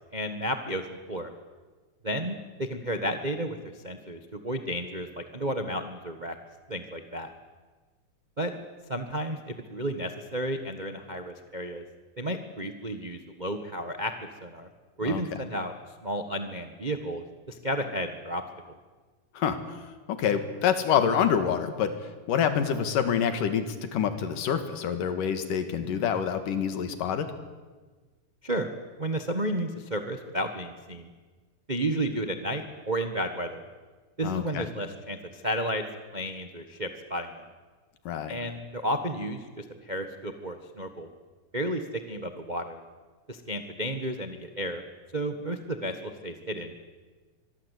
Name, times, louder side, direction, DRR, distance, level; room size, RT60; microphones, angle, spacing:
voice 1, 0.1-1.3 2.0-3.6 3.8-6.3 6.7-7.3 8.4-8.5 8.9-11.8 12.2-14.1 14.4-14.7 15.0-15.7 16.0-18.4 28.4-28.7 29.0-31.1 31.7-33.6 34.2-35.8 36.1-37.4 38.3-41.1 41.5-42.8 43.3-44.8 45.1-46.8, right 1 dB, 80° right, 7 dB, 0.4 m, -32 dB
voice 2, 20.1-21.9 22.3-27.3 34.2-34.7 38.1-38.4, left 8 dB, 85° left, 9 dB, 3.5 m, -26 dB
25.0 x 22.5 x 8.4 m, 1.3 s
omnidirectional pair, 3.7 m